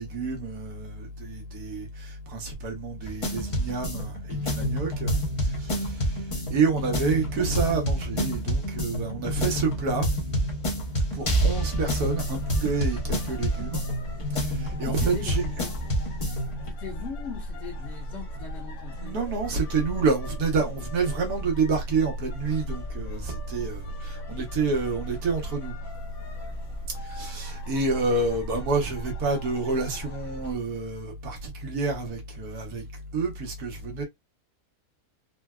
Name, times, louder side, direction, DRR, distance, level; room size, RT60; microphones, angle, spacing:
voice 1, 0.0-6.2 6.5-10.1 11.1-13.8 14.4-15.4 19.0-25.7 27.0-32.8 33.1-34.0, right 4 dB, 85° right, 1.5 m, -28 dB
sound 1, 3.0-16.7, equal, 30° left, 0.6 m, -28 dB
sound 2, 11.2-30.5, equal, 70° left, 1.3 m, -37 dB
voice 2, 14.7-15.7 16.7-19.2, left 6 dB, 45° left, 1.4 m, -40 dB
3.8 x 2.2 x 2.3 m
omnidirectional pair, 1.6 m